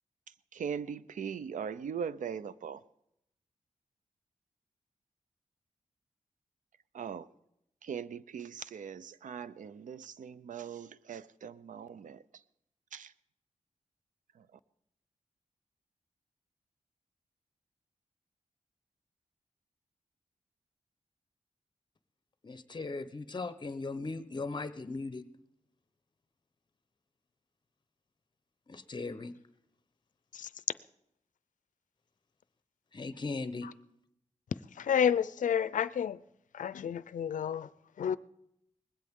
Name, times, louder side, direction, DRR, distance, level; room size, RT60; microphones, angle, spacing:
voice 1, 0.5-2.8 6.9-7.3 7.8-12.4 12.9-13.1 14.3-14.6, right 7 dB, 90° right, 0.5 m, -40 dB
voice 2, 22.4-25.3 28.7-29.3 32.9-33.7, left 3 dB, 35° left, 0.8 m, -38 dB
voice 3, 34.8-36.2 36.5-37.7 38.0-38.2, left 8 dB, 90° left, 0.4 m, -30 dB
20.0 x 16.0 x 3.7 m
wide cardioid pair, 100°, 13 cm